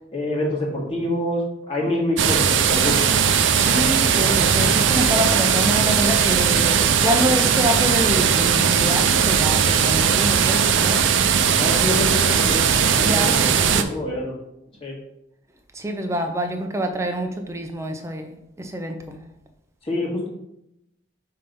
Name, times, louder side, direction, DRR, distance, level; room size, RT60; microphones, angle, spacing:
voice 1, 0.1-3.0 11.6-12.6 13.0-14.4 14.8-15.0 19.8-20.3, left 1 dB, 30° left, 1.8 m, -26 dB
sound 1, 2.2-13.8, right 7 dB, 75° right, 0.5 m, -18 dB
voice 2, 3.5-11.0 13.0-14.0 15.7-19.2, equal, 15° right, 0.6 m, -26 dB
5.6 x 3.4 x 5.3 m
head